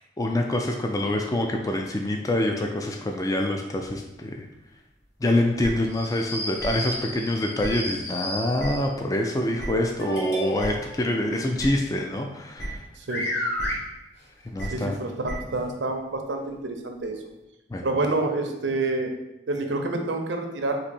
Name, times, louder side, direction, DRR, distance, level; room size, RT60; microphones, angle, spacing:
voice 1, 0.2-4.5 5.2-12.8 14.5-15.0 17.7-17.8, left 1 dB, 20° left, 3 dB, 0.3 m, -26 dB
sound 1, 5.6-5.7 6.6-6.7 7.6-7.7 8.6-8.7 9.6-9.7 10.6-10.7 11.6-11.7 12.6-12.7 13.6-13.7 14.6-14.7 15.2-15.3, right 1 dB, 55° left, 1.5 m, -33 dB
sound 2, 5.9-8.9 10.0-11.0 12.7-12.8 13.1-13.8 14.9-15.0 15.5-15.6 16.4-16.5, left 1 dB, 75° left, 1.2 m, -32 dB
voice 2, 13.0-13.3 14.7-17.2 17.8-19.1 19.5-20.8, right 2 dB, 75° right, 4 dB, 0.6 m, -28 dB
4.1 x 2.6 x 4.2 m, 0.98 s
head